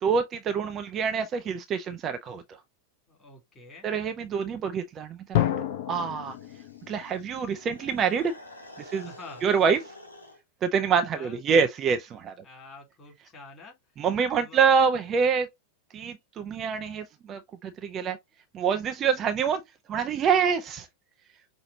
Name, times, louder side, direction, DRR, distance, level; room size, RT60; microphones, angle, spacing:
voice 1, 0.0-2.4 3.8-5.5 5.9-6.4 6.9-8.3 8.8-9.1 9.4-9.8 10.6-12.3 14.0-15.5 15.9-18.2 18.5-19.6 19.9-20.9, right 6 dB, 30° right, 0.6 m, -26 dB
voice 2, 3.1-3.9 8.9-9.5 11.1-11.4 12.4-13.8 14.3-14.8, left 3 dB, 20° left, 3.1 m, -47 dB
Drum, 5.3-8.1, left 12 dB, 50° left, 0.6 m, -30 dB
sound 1, 6.2-10.4, left 1 dB, 85° left, 1.4 m, -48 dB
5.7 x 2.9 x 2.7 m
figure-of-eight pair, 90°, 0 cm